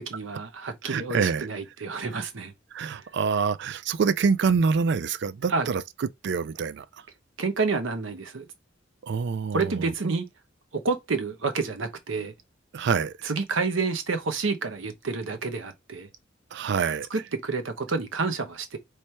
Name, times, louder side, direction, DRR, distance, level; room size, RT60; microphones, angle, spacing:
voice 1, 0.0-2.5 2.9-3.1 5.5-5.7 7.4-8.5 9.5-10.3 10.7-12.3 13.2-16.1 17.1-18.8, right 4 dB, 90° right, 0.8 m, -29 dB
voice 2, 0.8-1.5 2.7-6.9 9.0-9.9 12.7-13.3 16.5-17.2, right 5 dB, 60° right, 0.4 m, -26 dB
3.2 x 3.2 x 4.3 m
head